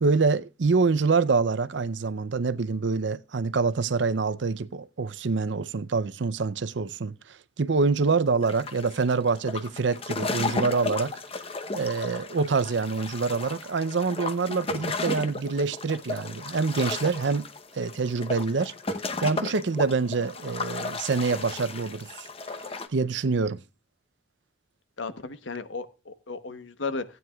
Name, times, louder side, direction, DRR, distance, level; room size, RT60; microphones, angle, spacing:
voice 1, 0.0-7.1 7.6-11.2 11.7-17.5 17.7-18.7 19.2-22.3 22.9-23.6, right 4 dB, 70° right, 0.6 m, -26 dB
sound 1, 8.4-22.9, left 3 dB, 30° left, 0.8 m, -34 dB
voice 2, 25.0-27.0, left 4 dB, 85° left, 1.0 m, -34 dB
16.5 x 9.3 x 2.3 m
head